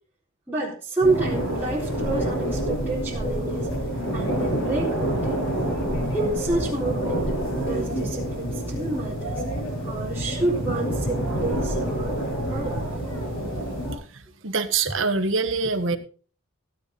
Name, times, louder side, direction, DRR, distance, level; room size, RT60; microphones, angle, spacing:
voice 1, 0.5-3.7 4.1-5.4 6.1-7.3 7.6-9.4 9.8-12.8, right 2 dB, 10° right, -8 dB, 4.0 m, -29 dB
sound 1, 1.0-14.0, right 1 dB, 75° left, 7.9 m, -27 dB
voice 2, 14.1-16.0, right 4 dB, 65° right, 8 dB, 1.4 m, -25 dB
16.0 x 8.6 x 4.1 m, 0.39 s
head